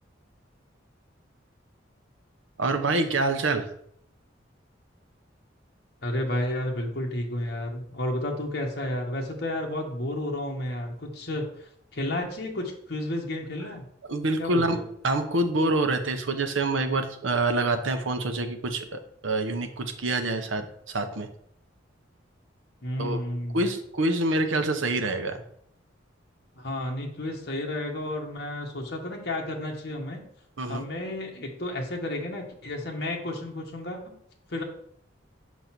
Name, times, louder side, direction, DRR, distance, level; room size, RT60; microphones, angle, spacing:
voice 1, 2.6-3.7 14.1-14.8 15.0-21.3 23.0-23.2 23.5-25.4 30.6-30.8, right 2 dB, 85° right, 7 dB, 0.9 m, -26 dB
voice 2, 6.0-13.8 14.4-14.8 22.8-23.7 26.6-30.2 30.6-34.1 34.5-34.6, left 1 dB, 55° left, 0 dB, 1.4 m, -32 dB
6.6 x 4.0 x 5.9 m, 0.68 s
head